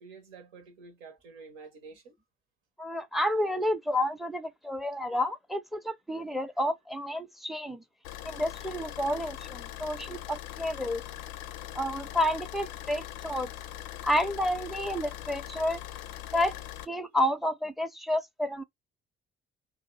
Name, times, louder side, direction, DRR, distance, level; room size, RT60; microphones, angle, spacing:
voice 1, 0.0-2.2, right 4 dB, 70° right, 0.9 m, -49 dB
voice 2, 2.8-7.8 8.2-11.0 11.7-13.5 14.0-15.8 16.3-16.5 16.9-18.6, left 1 dB, ahead, 0.5 m, -30 dB
Car / Idling, 8.0-16.9, left 13 dB, 70° left, 0.5 m, -41 dB
2.6 x 2.3 x 3.9 m
figure-of-eight pair, 40°, 29 cm